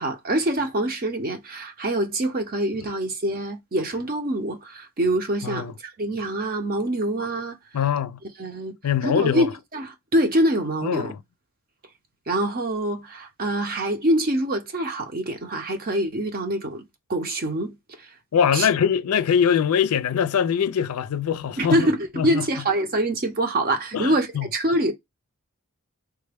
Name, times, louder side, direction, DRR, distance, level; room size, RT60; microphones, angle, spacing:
voice 1, 0.0-7.6 8.4-8.8 9.0-11.1 12.3-18.1 18.5-18.7 21.6-24.9, right 1 dB, 40° right, 0.7 m, -25 dB
voice 2, 7.7-8.2 8.8-9.5 10.8-11.2 18.3-21.9 22.2-22.4 23.9-24.5, left 8 dB, 90° left, 0.4 m, -22 dB
3.4 x 2.2 x 3.4 m
head